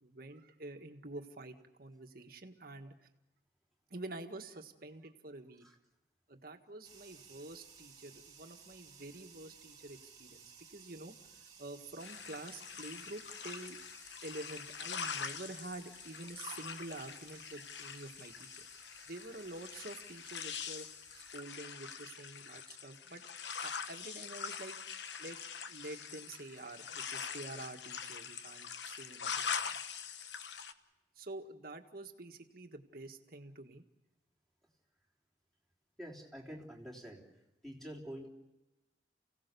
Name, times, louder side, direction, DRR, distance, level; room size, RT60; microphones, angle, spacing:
voice 1, 0.0-3.1 3.9-5.7 6.3-11.1 11.6-13.8 14.2-18.7 19.0-20.9 21.1-23.3 23.6-24.8 25.2-25.4 25.7-29.8 31.2-33.8, right 2 dB, 55° right, 5 dB, 1.7 m, -48 dB
sound 1, 6.8-21.4, right 6 dB, 20° right, 2.2 m, -59 dB
sound 2, 12.0-30.7, left 6 dB, 80° left, 1.1 m, -43 dB
voice 2, 36.0-37.3 37.6-38.3, equal, ahead, -3 dB, 3.5 m, -47 dB
29.5 x 17.0 x 6.9 m, 1.0 s
head